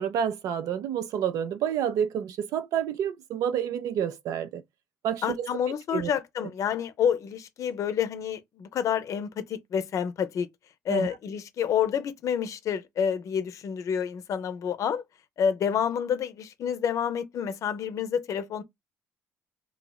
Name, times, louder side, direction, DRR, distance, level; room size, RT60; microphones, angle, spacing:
voice 1, 0.0-4.6 5.0-5.5 5.9-6.1 10.9-11.1, right 9 dB, 75° right, 0.5 m, -29 dB
voice 2, 5.2-10.5 10.9-15.0 15.4-18.6, left 8 dB, 60° left, 0.5 m, -28 dB
2.9 x 2.7 x 2.2 m
supercardioid pair, 70°, 6 cm